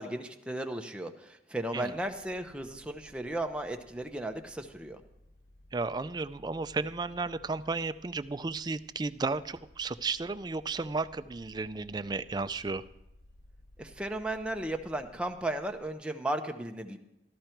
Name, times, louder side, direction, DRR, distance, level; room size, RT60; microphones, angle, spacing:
voice 1, 0.0-5.0 13.8-17.0, right 1 dB, 5° right, 4 dB, 0.8 m, -35 dB
sound 1, 2.0-15.9, left 1 dB, 85° left, 3.0 m, -58 dB
voice 2, 5.7-12.8, right 3 dB, 25° right, 12 dB, 0.4 m, -33 dB
13.5 x 12.5 x 4.5 m, 0.87 s
head